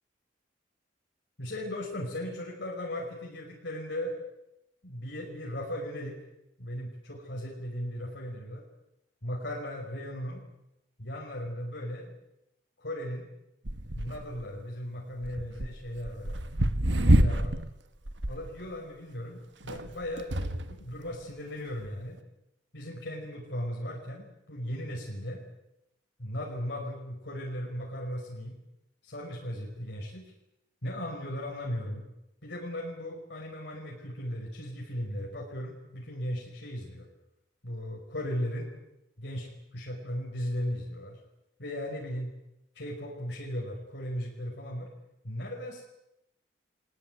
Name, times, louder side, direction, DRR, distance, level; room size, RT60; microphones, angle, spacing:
voice 1, 1.4-4.2 4.8-6.2 6.6-8.6 9.2-10.4 11.0-12.1 12.8-13.3 13.9-16.4 16.9-17.6 18.3-22.2 22.7-25.4 26.2-28.6 29.0-30.3 30.8-32.0 32.4-37.1 37.6-38.7 39.2-39.5 39.7-41.2 41.6-42.3 42.8-44.9 45.2-45.8, equal, 70° left, -2 dB, 5.7 m, -37 dB
sound 1, 13.6-14.4 15.2-17.7 18.1-18.5 19.6-20.8 21.6-21.7, right 1 dB, 80° right, 1.6 m, -27 dB
24.0 x 19.5 x 9.5 m, 0.86 s
head